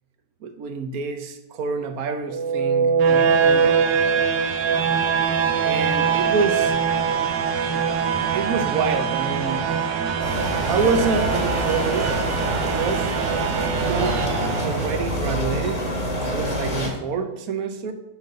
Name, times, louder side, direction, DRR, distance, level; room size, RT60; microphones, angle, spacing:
voice 1, 0.4-3.8 5.6-6.8 8.3-9.9 10.6-12.2 12.5-13.1 13.8-14.2 14.6-17.9, right 4 dB, 60° right, 7 dB, 1.3 m, -27 dB
sound 1, 2.3-15.3, right 6 dB, 85° right, 1.5 m, -23 dB
sound 2, 10.2-16.9, equal, 25° left, 1.6 m, -26 dB
6.6 x 5.4 x 6.7 m, 0.96 s
omnidirectional pair, 1.9 m